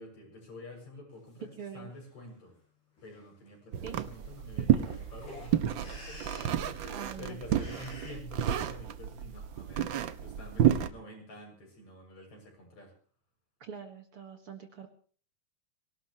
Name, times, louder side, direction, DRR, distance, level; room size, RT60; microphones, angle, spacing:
voice 1, 0.0-2.6 3.0-9.9 10.2-12.9, left 1 dB, 65° left, 0 dB, 8.3 m, -48 dB
sound 1, 1.3-1.4 1.9-2.3 3.0-3.2 3.5-3.6 3.7-8.1, left 1 dB, 85° left, 9.8 m, -50 dB
voice 2, 1.6-1.9 3.8-4.0 6.9-7.6 13.6-14.9, right 7 dB, 50° right, 5 dB, 2.3 m, -44 dB
sound 2, 3.7-10.9, right 10 dB, 85° right, 1.0 m, -30 dB
25.0 x 18.0 x 3.1 m, 0.43 s
omnidirectional pair, 3.5 m